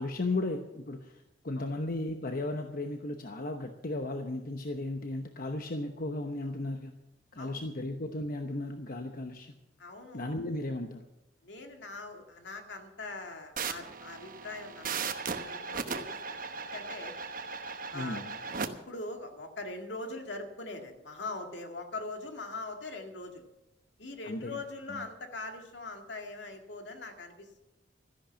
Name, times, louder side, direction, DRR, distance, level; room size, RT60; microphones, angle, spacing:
voice 1, 0.0-6.9 7.3-9.5 10.1-11.0 17.9-18.4 24.2-24.6 24.9-25.0, left 2 dB, 50° left, 5 dB, 1.0 m, -35 dB
voice 2, 9.8-10.3 11.4-17.1 17.9-18.2 18.6-23.4 24.0-27.5, left 2 dB, 75° left, 4 dB, 2.1 m, -42 dB
sound 1, 13.6-18.7, right 5 dB, 50° right, 1.0 m, -37 dB
13.5 x 11.0 x 7.0 m, 0.92 s
head